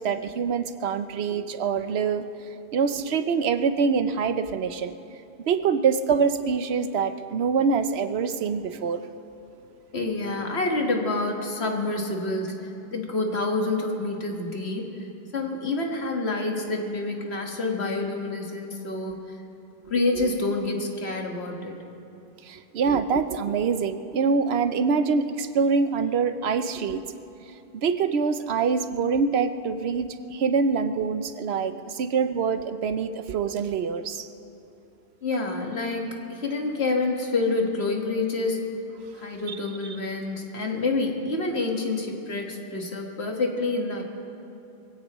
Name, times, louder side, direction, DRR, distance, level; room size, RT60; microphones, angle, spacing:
voice 1, 0.0-2.3 2.7-4.9 5.5-9.0 20.2-20.3 22.4-27.0 27.7-34.3 39.5-40.0, right 5 dB, 80° right, 10 dB, 0.9 m, -25 dB
voice 2, 9.9-15.1 15.3-19.3 19.9-21.8 35.2-38.7 39.1-44.0, left 2 dB, 85° left, 1 dB, 1.9 m, -28 dB
23.0 x 16.5 x 3.1 m, 2.8 s
omnidirectional pair, 1.1 m